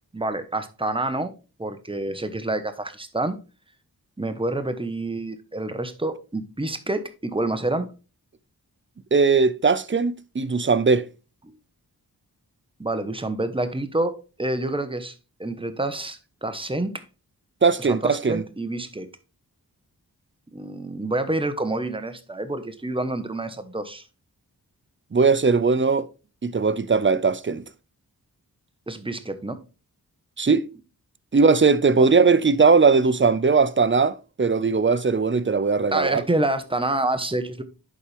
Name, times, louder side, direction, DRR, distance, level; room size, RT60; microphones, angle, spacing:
voice 1, 0.1-1.3 1.6-3.4 4.2-7.9 11.4-11.5 12.8-15.1 15.4-16.9 17.9-19.1 20.5-24.0 28.9-29.6 31.9-32.1 35.9-37.6, right 2 dB, 15° right, 1.1 m, -28 dB
voice 2, 9.1-11.0 17.6-18.4 25.1-26.1 26.4-27.6 30.4-30.7 31.3-36.2, right 4 dB, 30° right, 0.6 m, -19 dB
11.0 x 4.4 x 3.4 m
cardioid pair, 50°, 38 cm